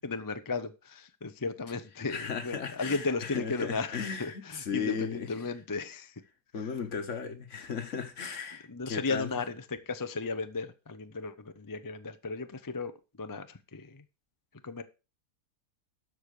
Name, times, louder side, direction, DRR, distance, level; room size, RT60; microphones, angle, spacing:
voice 1, 0.0-6.2 8.7-12.9 13.2-14.0 14.6-14.8, left 3 dB, 30° left, 0.4 m, -35 dB
voice 2, 2.1-5.3 6.5-9.3, left 6 dB, 50° left, 1.5 m, -36 dB
13.0 x 5.0 x 6.5 m
omnidirectional pair, 1.7 m